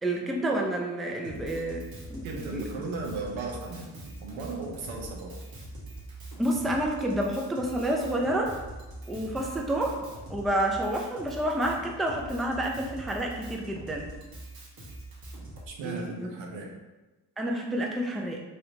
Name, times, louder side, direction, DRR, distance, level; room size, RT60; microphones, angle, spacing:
voice 1, 0.0-2.7 6.4-8.6 9.1-10.0 10.3-14.1 15.8-16.3 17.4-18.4, right 1 dB, ahead, 0 dB, 0.4 m, -29 dB
Drum kit, 1.2-15.7, right 1 dB, 50° right, 1.1 m, -43 dB
voice 2, 2.2-5.4 15.7-16.7, right 3 dB, 80° right, 0 dB, 0.8 m, -36 dB
3.3 x 2.7 x 2.7 m, 1.1 s
supercardioid pair, 50°, 46 cm